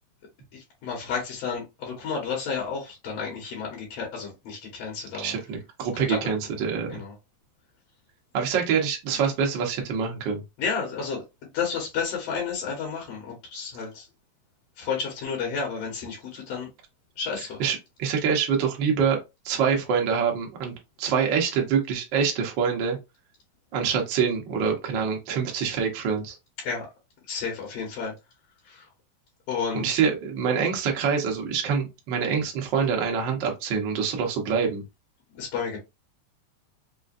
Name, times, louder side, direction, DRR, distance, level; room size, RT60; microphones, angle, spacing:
voice 1, 0.5-5.3 6.1-6.2 6.9-7.1 10.6-11.2 11.5-14.1 14.8-16.7 17.2-17.6 26.6-26.9 27.3-28.1 28.7-28.9 29.5-30.0 35.3-35.8, left 5 dB, 60° left, 2.1 m, -31 dB
voice 2, 5.2-7.0 8.3-10.4 17.4-19.2 19.4-23.0 23.7-26.4 29.7-34.8, right 6 dB, 90° right, 1.0 m, -25 dB
5.0 x 2.5 x 2.5 m
omnidirectional pair, 3.6 m